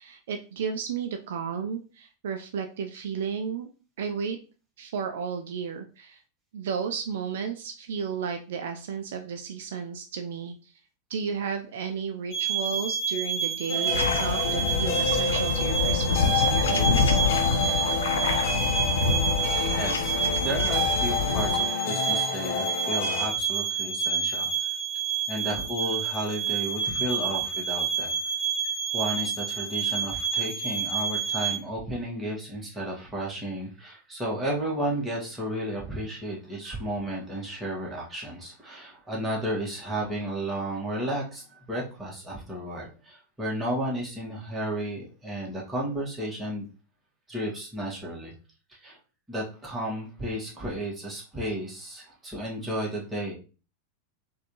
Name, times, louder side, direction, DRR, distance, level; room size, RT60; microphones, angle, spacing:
voice 1, 0.0-3.7 4.0-4.4 4.8-6.2 6.5-10.7 11.1-17.2, right 6 dB, 65° right, 6 dB, 0.4 m, -33 dB
sound 1, 12.3-31.6, right 6 dB, 40° left, 1.3 m, -29 dB
sound 2, 13.7-23.3, left 5 dB, 55° left, 0.9 m, -29 dB
sound 3, 13.9-21.6, left 5 dB, 75° left, 0.5 m, -27 dB
voice 2, 19.7-24.5 25.3-28.2 28.9-46.7 47.3-48.3 48.8-49.0 49.3-53.3, right 1 dB, 10° right, -4 dB, 1.8 m, -33 dB
4.1 x 2.7 x 3.1 m, 0.34 s
figure-of-eight pair, 90°, 0 cm